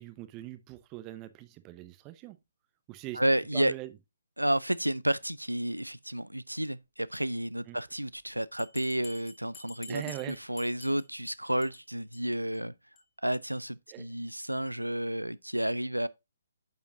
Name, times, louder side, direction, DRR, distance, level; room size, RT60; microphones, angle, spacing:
voice 1, 0.0-2.4 2.9-3.2 3.5-3.9 7.7-7.8 9.9-10.4 13.9-14.1, right 15 dB, 20° right, 0.8 m, -41 dB
voice 2, 3.1-3.7 4.4-12.7 13.2-16.1, right 1 dB, 85° right, 0.4 m, -31 dB
Bell, 8.6-11.3 11.6-11.8 12.1-12.2 12.5-12.6 13.0-13.1, left 4 dB, 15° left, 1.8 m, -49 dB
9.3 x 7.1 x 2.5 m
figure-of-eight pair, 135°, 0 cm